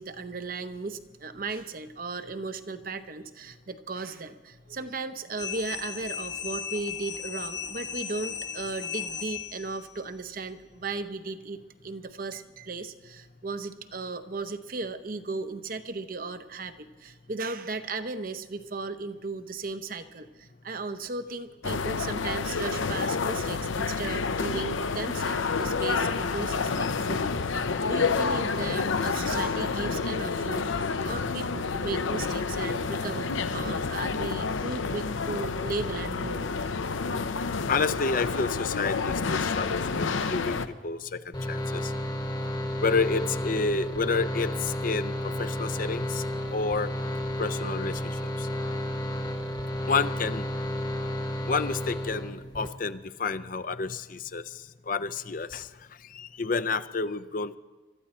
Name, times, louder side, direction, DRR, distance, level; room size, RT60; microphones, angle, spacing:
voice 1, 0.0-36.6, right 3 dB, 45° right, 10 dB, 0.8 m, -36 dB
sound 1, 5.4-9.9, left 8 dB, 65° left, 1.0 m, -36 dB
sound 2, 21.6-40.7, left 4 dB, 85° left, 0.7 m, -29 dB
voice 2, 37.7-40.6 40.8-41.9 42.8-46.2 46.5-46.9 47.4-48.5 49.9-50.5 51.5-55.7 56.1-57.6, left 4 dB, 45° left, 12 dB, 0.5 m, -30 dB
sound 3, 41.3-52.7, equal, 20° left, 1.1 m, -32 dB
24.5 x 13.0 x 4.3 m, 1.2 s
head